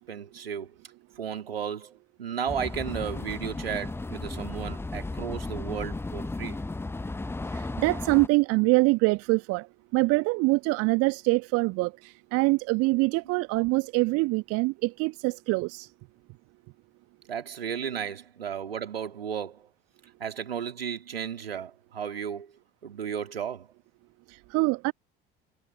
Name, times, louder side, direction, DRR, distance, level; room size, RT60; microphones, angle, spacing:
voice 1, 0.1-0.7 1.2-6.6 13.2-13.3 17.3-19.7 20.2-22.5 22.8-23.7, right 8 dB, 75° right, 3.3 m, -34 dB
sound 1, 2.5-8.3, left 2 dB, 10° left, 0.8 m, -35 dB
voice 2, 7.8-9.6 9.9-11.9 12.3-15.9 24.5-24.9, right 25 dB, 50° right, 1.2 m, -24 dB
figure-of-eight pair, 60°, 30 cm